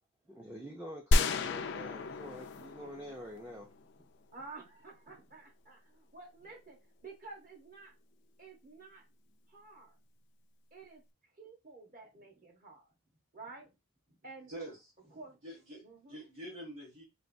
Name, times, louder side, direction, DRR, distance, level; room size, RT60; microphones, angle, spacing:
voice 1, 0.3-3.7, equal, 10° right, 0.5 m, -46 dB
sound 1, 1.1-4.0, left 2 dB, 55° left, 0.3 m, -32 dB
voice 2, 4.3-7.9 8.4-9.0 9.5-10.0 10.7-11.0 11.3-12.9 13.3-13.7 14.1-14.5 15.1-15.4 15.8-16.2, right 3 dB, 40° right, 1.1 m, -51 dB
voice 3, 14.5-14.9 15.4-17.0, right 1 dB, 75° right, 1.7 m, -46 dB
3.3 x 3.0 x 2.6 m
head